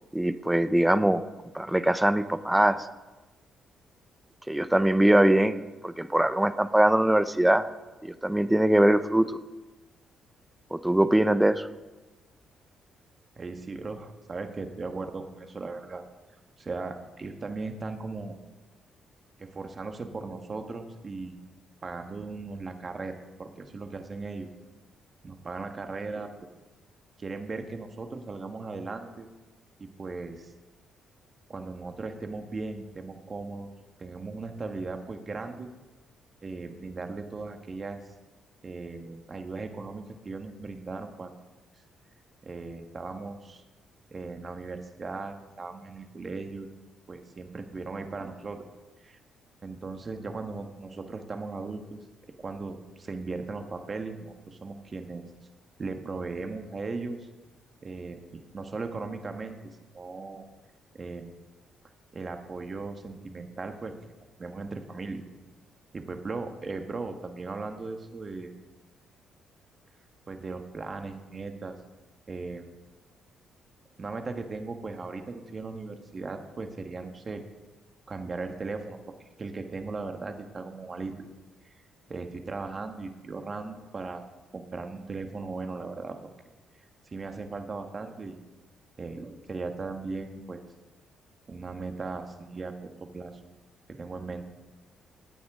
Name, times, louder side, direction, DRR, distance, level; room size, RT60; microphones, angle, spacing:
voice 1, 0.1-1.2 1.5-2.9 4.5-5.6 5.8-7.7 8.0-9.4 10.7-11.7, right 1 dB, 10° right, 12 dB, 0.7 m, -22 dB
voice 2, 13.4-16.0 16.6-18.3 19.4-21.4 21.8-24.5 25.2-26.3 27.2-29.3 29.8-30.5 31.5-33.7 34.0-35.7 36.4-38.0 38.6-41.4 42.4-43.6 44.1-46.7 47.1-48.6 49.0-49.2 49.6-52.0 52.4-55.2 55.8-57.3 57.8-59.6 59.9-60.5 60.9-61.3 62.1-63.9 64.4-65.2 65.9-68.5 70.3-71.7 72.3-72.7 74.0-77.4 78.1-81.3 81.6-81.8 82.1-86.2 87.1-88.4 89.0-90.6 91.5-93.4 93.9-94.4, right 3 dB, 35° right, 6 dB, 1.5 m, -37 dB
17.0 x 9.3 x 3.7 m, 1.1 s
cardioid pair, 90°, 0 cm